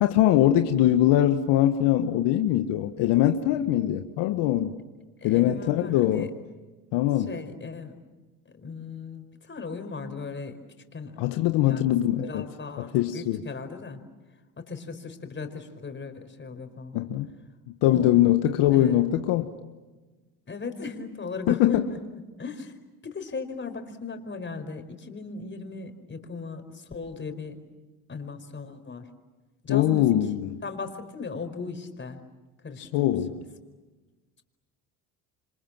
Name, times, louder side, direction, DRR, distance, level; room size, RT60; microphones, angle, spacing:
voice 1, 0.0-4.7 5.2-6.3 6.9-7.3 11.2-12.4 12.8-13.4 16.9-17.3 17.8-19.5 21.5-21.8 29.7-30.6 32.8-33.4, left 13 dB, 70° left, 6 dB, 1.6 m, -22 dB
voice 2, 5.2-6.3 7.3-8.0 8.4-10.6 10.9-11.2 11.6-11.9 12.2-14.0 14.6-17.0 17.9-18.1 18.7-19.0 20.5-22.7 23.0-27.6 28.1-29.1 29.6-30.1 30.6-32.2 32.6-33.4, left 4 dB, 25° left, 7 dB, 4.9 m, -37 dB
28.5 x 26.0 x 7.5 m, 1.2 s
supercardioid pair, 80°, 42 cm